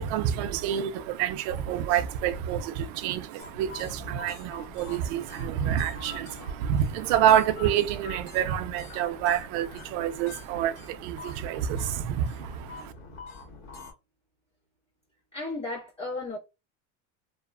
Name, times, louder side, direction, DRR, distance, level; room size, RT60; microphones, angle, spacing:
voice 1, 0.0-12.9, right 10 dB, 65° right, 0.5 m, -27 dB
sound 1, 3.4-13.9, left 3 dB, 50° left, 1.6 m, -45 dB
voice 2, 6.4-6.7 15.3-16.4, left 2 dB, 15° left, 1.5 m, -35 dB
2.9 x 2.0 x 2.3 m
supercardioid pair, 130°, 36 cm